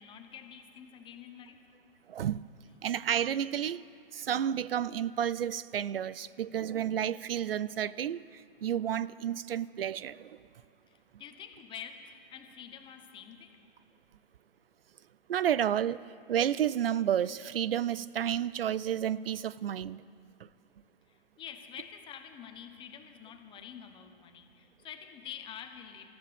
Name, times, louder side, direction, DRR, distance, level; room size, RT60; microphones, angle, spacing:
voice 1, 0.0-1.7 10.9-13.6 21.1-26.1, left 8 dB, 15° left, 1.1 m, -47 dB
voice 2, 2.1-2.4 2.8-3.8 4.1-10.4 15.3-16.0 16.3-20.0 20.4-20.5, right 9 dB, 75° right, 0.5 m, -31 dB
28.0 x 15.0 x 3.5 m
hypercardioid pair, 130°, 29 cm